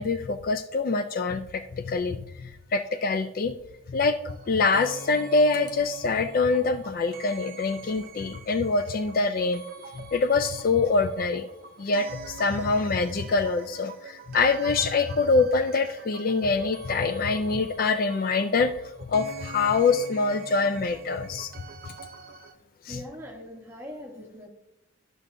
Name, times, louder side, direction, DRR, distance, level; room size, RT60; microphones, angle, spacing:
voice 1, 0.0-3.5 3.9-4.2 4.5-9.6 10.0-11.5 11.8-18.7 19.1-21.5 22.8-23.0, left 4 dB, 45° left, 9 dB, 0.3 m, -25 dB
sound 1, 4.3-22.5, right 4 dB, 50° right, 0.6 m, -45 dB
voice 2, 22.9-24.5, left 1 dB, 10° right, -1 dB, 1.1 m, -41 dB
11.5 x 6.2 x 2.5 m, 0.85 s
head